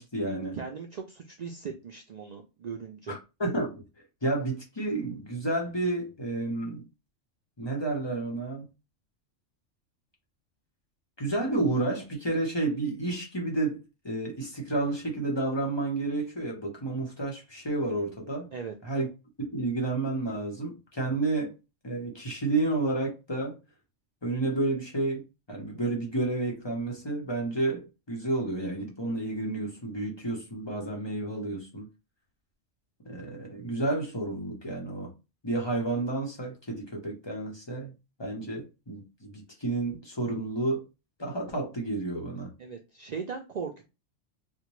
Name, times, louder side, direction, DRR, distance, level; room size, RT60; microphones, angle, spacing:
voice 1, 0.0-0.6 3.1-3.8 4.2-6.8 7.6-8.7 11.2-18.5 18.8-19.1 19.4-21.5 21.8-23.6 24.2-25.2 25.5-31.9 33.0-35.1 35.4-37.9 38.2-40.8 41.2-42.5, right 2 dB, 25° left, 0.8 m, -30 dB
voice 2, 0.5-3.1 18.5-18.8 42.6-43.8, right 6 dB, 80° right, 0.3 m, -38 dB
4.2 x 2.1 x 3.0 m
omnidirectional pair, 1.3 m